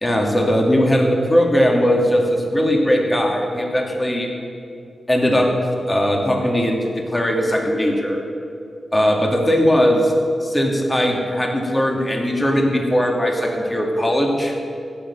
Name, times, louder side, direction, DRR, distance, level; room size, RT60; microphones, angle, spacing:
voice 1, 0.0-4.3 5.1-5.5 5.9-8.2 8.9-10.1 10.4-14.5, equal, 15° left, 1 dB, 2.1 m, -19 dB
15.0 x 6.9 x 8.6 m, 2.5 s
wide cardioid pair, 120°, 0 cm